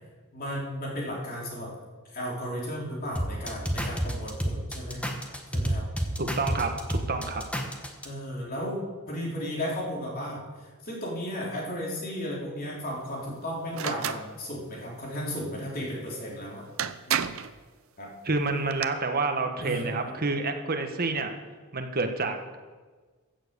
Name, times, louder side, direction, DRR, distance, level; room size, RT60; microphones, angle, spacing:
voice 1, 0.3-1.7 2.1-5.0 5.5-5.8 8.0-8.8 9.1-10.4 10.8-16.7 17.1-17.3 18.0-18.1 19.6-20.2, equal, 45° left, -3 dB, 3.6 m, -34 dB
sound 1, 3.2-8.1, equal, 5° left, 1.3 m, -29 dB
voice 2, 6.2-7.4 18.2-21.3 21.7-22.6, right 3 dB, 45° right, 5 dB, 1.3 m, -29 dB
sound 2, 13.7-14.2 16.3-16.4 16.8-17.5 18.5-18.9, right 9 dB, 70° right, 0.6 m, -30 dB
15.5 x 7.3 x 6.8 m, 1.4 s
head